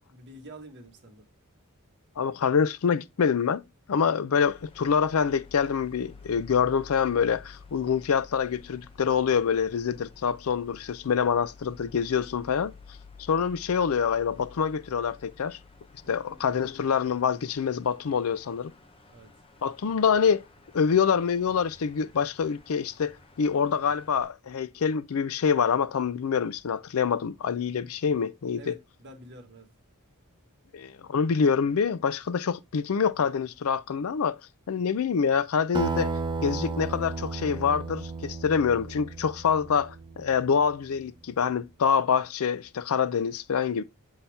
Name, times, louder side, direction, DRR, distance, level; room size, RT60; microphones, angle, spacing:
voice 1, 0.1-1.2 16.0-16.6 19.1-19.3 28.6-29.7, right 1 dB, 50° right, 1.4 m, -48 dB
voice 2, 2.2-3.6 3.9-12.7 13.2-15.6 16.1-18.7 19.6-20.4 20.7-23.1 23.4-28.7 30.7-34.4 34.7-36.1 36.4-43.8, left 6 dB, 70° left, 0.4 m, -26 dB
sound 1, 4.4-24.3, left 4 dB, 25° left, 0.9 m, -52 dB
Acoustic guitar, 35.7-40.6, right 3 dB, 20° right, 0.6 m, -34 dB
7.2 x 4.2 x 3.3 m
head